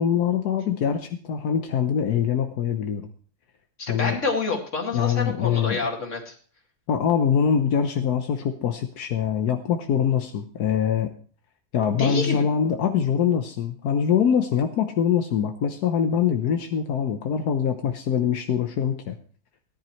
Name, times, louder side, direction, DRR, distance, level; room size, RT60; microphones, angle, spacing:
voice 1, 0.0-3.1 3.9-4.2 4.9-5.8 6.9-11.1 11.7-19.2, left 8 dB, 85° left, 6 dB, 1.4 m, -23 dB
voice 2, 3.8-6.4 12.0-12.4, left 3 dB, 50° left, 2 dB, 2.5 m, -28 dB
17.5 x 10.5 x 3.1 m, 0.43 s
omnidirectional pair, 1.6 m